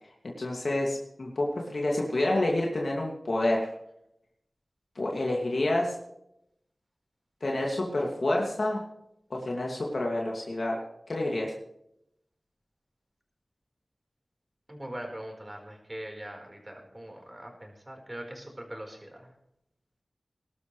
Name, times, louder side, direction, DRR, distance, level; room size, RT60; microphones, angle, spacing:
voice 1, 0.4-3.7 5.0-6.0 7.4-8.8 9.3-11.5, left 1 dB, 65° left, -2 dB, 2.4 m, -28 dB
voice 2, 14.7-19.3, right 1 dB, 25° right, 2 dB, 4.6 m, -42 dB
21.0 x 12.5 x 3.3 m, 0.79 s
wide cardioid pair, 55°, 0 cm